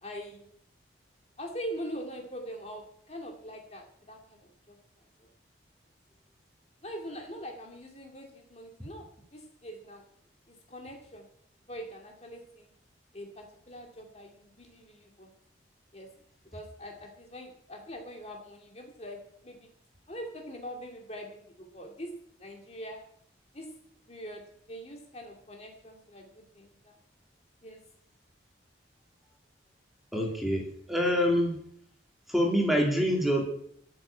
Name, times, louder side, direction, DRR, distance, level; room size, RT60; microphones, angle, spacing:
voice 1, 0.0-0.5 1.4-4.8 5.2-5.3 6.8-9.0 9.3-10.0 10.5-11.2 11.7-12.7 13.1-15.3 15.9-16.1 16.5-19.2 19.4-19.7 20.1-22.1 22.4-23.0 23.5-23.7 24.1-24.4 24.7-27.0 27.6-27.8, equal, 35° left, 2 dB, 2.3 m, -43 dB
voice 2, 30.1-31.6 32.3-33.5, equal, ahead, 0 dB, 2.8 m, -26 dB
13.5 x 7.9 x 8.7 m, 0.64 s
head